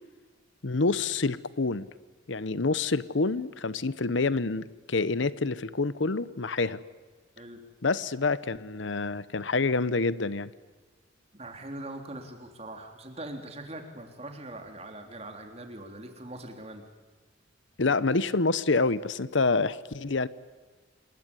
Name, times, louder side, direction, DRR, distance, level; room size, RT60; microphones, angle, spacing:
voice 1, 0.6-1.9 2.3-6.8 7.8-10.5 17.8-20.3, left 3 dB, 70° left, 17 dB, 0.9 m, -27 dB
voice 2, 11.3-16.8, right 1 dB, 35° right, 4 dB, 3.5 m, -42 dB
27.5 x 21.5 x 9.8 m, 1.4 s
head